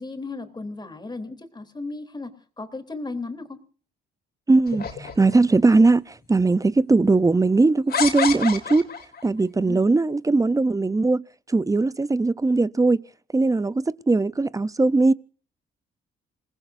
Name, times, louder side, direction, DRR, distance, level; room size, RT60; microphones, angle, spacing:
voice 1, 0.0-3.6 9.6-9.8, left 3 dB, 20° left, 3.4 m, -35 dB
voice 2, 4.5-8.9 9.2-13.0 13.3-15.1, right 3 dB, 15° right, 0.7 m, -20 dB
sound 1, 4.7-5.6 6.4-6.5 7.9-9.2, left 6 dB, 50° left, 3.7 m, -28 dB
28.0 x 19.5 x 2.7 m
cardioid pair, 90°, 20 cm